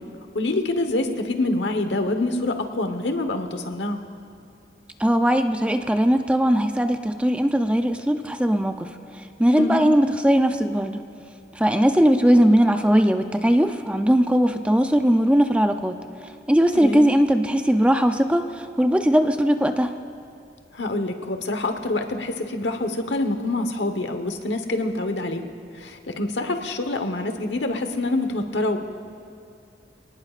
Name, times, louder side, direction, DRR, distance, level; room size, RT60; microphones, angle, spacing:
voice 1, 0.3-4.0 9.6-9.8 16.7-17.1 20.7-25.5 25.8-28.8, left 2 dB, 80° left, 7 dB, 1.2 m, -26 dB
voice 2, 5.0-11.0 11.5-16.0 16.5-20.0, equal, 5° right, 7 dB, 0.5 m, -19 dB
27.0 x 19.0 x 2.5 m, 2.5 s
head